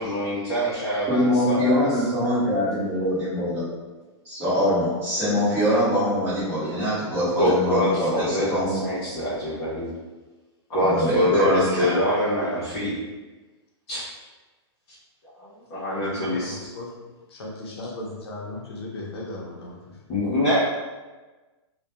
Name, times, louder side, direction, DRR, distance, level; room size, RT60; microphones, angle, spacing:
voice 1, 0.0-1.9 7.4-9.9 10.7-12.9 13.9-14.0 15.7-16.6 20.1-20.7, equal, 15° left, -10 dB, 0.4 m, -24 dB
voice 2, 1.1-3.6 4.2-8.8 10.8-12.0, equal, 15° right, -10 dB, 0.7 m, -23 dB
voice 3, 16.0-17.0 17.3-20.0, left 2 dB, 65° left, -2 dB, 0.6 m, -37 dB
2.2 x 2.1 x 2.8 m, 1.2 s
hypercardioid pair, 170°, 15 cm